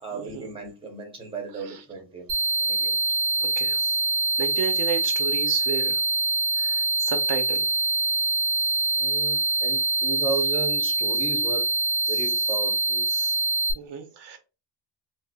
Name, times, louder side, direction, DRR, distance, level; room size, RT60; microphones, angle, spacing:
voice 1, 0.0-2.3 2.6-3.2 9.0-11.7 12.1-13.1, right 4 dB, 10° right, 0.7 m, -34 dB
sound 1, 2.3-13.7, right 2 dB, 85° right, 0.9 m, -24 dB
voice 2, 3.4-3.9 4.4-6.0 6.6-7.7 13.1-13.4 13.8-14.4, right 7 dB, 60° right, 0.6 m, -32 dB
4.9 x 2.1 x 2.2 m
cardioid pair, 170°, 46 cm